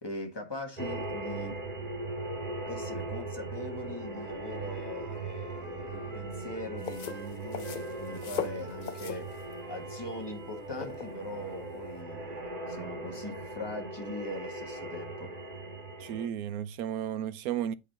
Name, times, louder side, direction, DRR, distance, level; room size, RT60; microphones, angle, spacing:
voice 1, 0.0-1.6 2.6-15.3, left 1 dB, 15° left, 1.6 m, -41 dB
sound 1, 0.8-16.3, right 2 dB, 30° right, 1.4 m, -39 dB
Wind instrument woodwind instrument, 3.8-7.3 7.6-11.8, right 3 dB, 60° right, 1.8 m, -49 dB
sound 2, 6.8-12.0, left 8 dB, 85° left, 0.4 m, -40 dB
voice 2, 16.0-17.7, right 10 dB, 85° right, 1.1 m, -33 dB
8.3 x 3.9 x 4.2 m
omnidirectional pair, 1.5 m